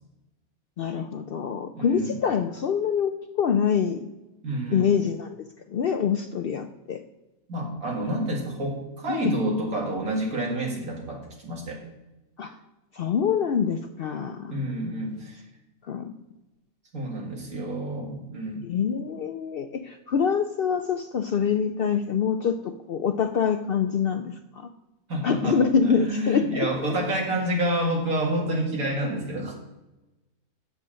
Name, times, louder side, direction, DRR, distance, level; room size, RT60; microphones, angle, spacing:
voice 1, 0.8-3.1 3.4-4.1 4.7-7.0 9.1-9.3 12.4-12.6 12.9-14.6 15.9-16.1 18.6-24.7 25.2-26.7, left 7 dB, 65° left, 7 dB, 0.5 m, -25 dB
voice 2, 1.7-2.2 4.4-4.9 7.5-11.8 14.5-15.4 16.9-18.7 25.1-29.5, right 1 dB, 85° right, 0 dB, 2.4 m, -28 dB
8.3 x 6.9 x 6.3 m, 1.0 s
omnidirectional pair, 1.5 m